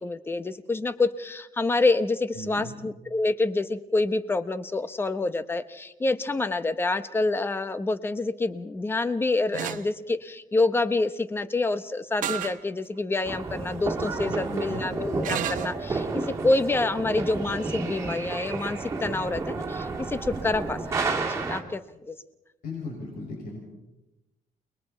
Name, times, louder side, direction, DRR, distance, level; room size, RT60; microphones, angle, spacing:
voice 1, 0.0-20.8 21.1-21.8 22.1-22.2, left 2 dB, 15° left, 12 dB, 0.8 m, -27 dB
voice 2, 2.3-2.7 14.3-14.8 22.6-23.6, left 2 dB, 75° left, -1 dB, 6.3 m, -36 dB
sound 1, 9.5-9.8 12.2-12.6 13.2-13.3 15.2-15.8, right 10 dB, 65° right, 1.1 m, -30 dB
sound 2, 13.2-21.6, right 3 dB, 20° right, 2.2 m, -31 dB
29.0 x 21.0 x 4.4 m, 0.98 s
cardioid pair, 165°, 15 cm